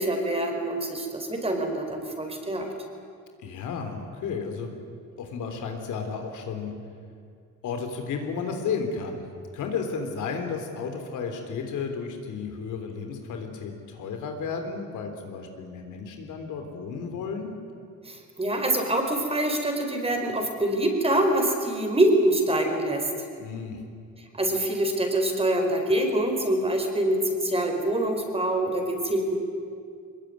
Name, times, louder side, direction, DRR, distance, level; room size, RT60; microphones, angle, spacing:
voice 1, 0.0-2.7 18.0-23.1 24.4-29.3, right 1 dB, 20° right, 3 dB, 4.8 m, -25 dB
voice 2, 3.4-4.7 5.2-6.7 7.6-9.2 9.5-17.5 23.4-23.8, left 5 dB, 80° left, 5 dB, 3.5 m, -33 dB
22.0 x 20.5 x 9.6 m, 2.3 s
cardioid pair, 90°, 30 cm